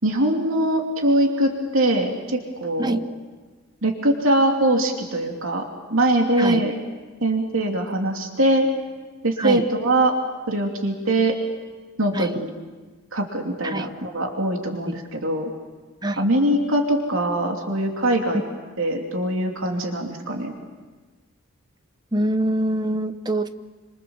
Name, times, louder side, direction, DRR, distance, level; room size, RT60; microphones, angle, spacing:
voice 1, 0.0-3.0 3.8-6.7 7.2-8.7 9.2-10.1 10.5-11.4 12.0-12.5 13.1-15.5 16.2-18.4 18.8-20.5, right 1 dB, 70° right, 2 dB, 2.9 m, -22 dB
voice 2, 2.8-3.1 6.4-6.7 9.4-9.7 12.1-12.4 13.6-13.9 14.8-15.0 16.0-16.2 19.7-19.9 22.1-23.5, right 1 dB, 20° right, 9 dB, 0.9 m, -25 dB
27.5 x 26.5 x 7.2 m, 1.3 s
head